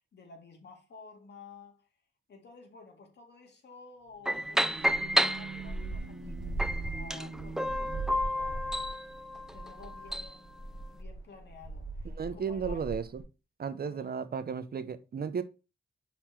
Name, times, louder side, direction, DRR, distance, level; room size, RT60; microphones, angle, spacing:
voice 1, 0.0-1.9 2.3-8.8 9.5-12.8 13.8-14.1, left 4 dB, 70° left, 2.0 m, -53 dB
sound 1, 4.1-8.9, right 4 dB, 70° right, 1.3 m, -46 dB
sound 2, 4.3-6.0 6.6-10.4, equal, 5° right, 0.3 m, -31 dB
sound 3, 4.8-13.2, right 2 dB, 20° left, 2.6 m, -40 dB
voice 2, 12.2-13.2 13.6-15.4, right 6 dB, 55° right, 0.8 m, -34 dB
5.7 x 4.3 x 4.5 m
cardioid pair, 75°, 19 cm